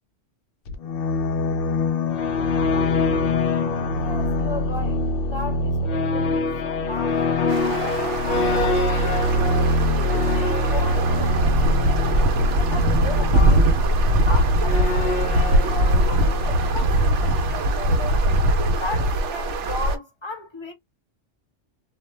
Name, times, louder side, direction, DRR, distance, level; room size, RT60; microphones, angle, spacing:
sound 1, 0.7-17.3, left 2 dB, 60° left, 0.7 m, -24 dB
voice 1, 4.0-5.1 5.3-9.1 9.7-13.7 14.2-18.2 18.7-20.7, left 2 dB, 25° left, 0.8 m, -36 dB
sound 2, 7.5-20.0, right 1 dB, 80° right, 0.9 m, -21 dB
2.4 x 2.1 x 3.1 m
omnidirectional pair, 1.2 m